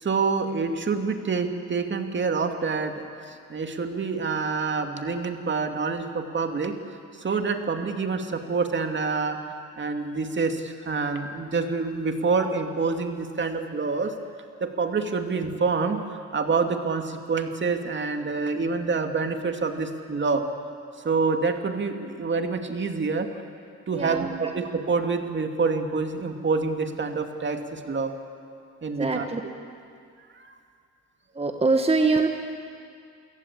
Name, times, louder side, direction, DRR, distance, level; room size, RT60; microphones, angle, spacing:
voice 1, 0.0-6.7 7.1-9.4 9.8-14.1 14.6-20.4 21.0-23.3 23.9-28.1 28.8-29.2 30.4-30.5, right 4 dB, 40° right, 5 dB, 2.4 m, -27 dB
voice 2, 23.9-24.5 28.9-29.4 31.3-32.3, right 3 dB, 20° right, 5 dB, 1.5 m, -24 dB
28.5 x 17.5 x 8.5 m, 2.4 s
cardioid pair, 90°, 30 cm